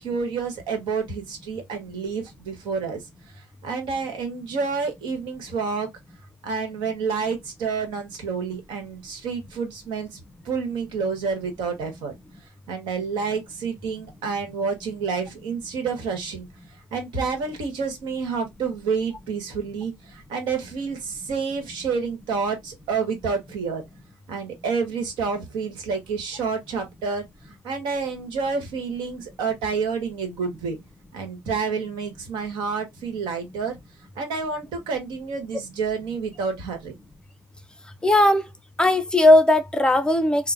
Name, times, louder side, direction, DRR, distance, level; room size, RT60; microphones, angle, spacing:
voice 1, 0.0-3.0 3.6-5.9 6.4-10.2 10.4-12.1 12.7-16.5 16.9-23.8 24.3-27.2 27.6-30.8 31.1-33.8 34.2-36.9, right 5 dB, 85° right, 1.2 m, -29 dB
voice 2, 38.0-38.4 38.8-40.5, left 1 dB, 10° left, 0.5 m, -17 dB
3.0 x 2.1 x 2.4 m
cardioid pair, 105°, 8 cm